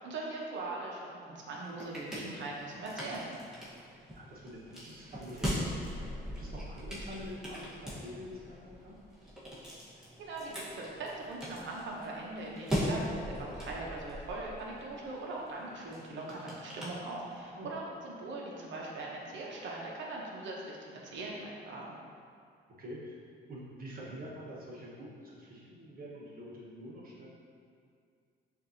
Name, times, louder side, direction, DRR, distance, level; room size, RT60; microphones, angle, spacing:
voice 1, 0.0-3.3 10.2-21.8, right 2 dB, 70° right, -3 dB, 0.8 m, -41 dB
sound 1, 1.4-17.6, equal, 5° right, 1.2 m, -41 dB
voice 2, 4.1-9.0 17.5-17.7 22.8-23.2 23.5-27.3, equal, 50° right, -5 dB, 1.2 m, -46 dB
6.7 x 2.6 x 2.7 m, 2.3 s
cardioid pair, 90°, 20 cm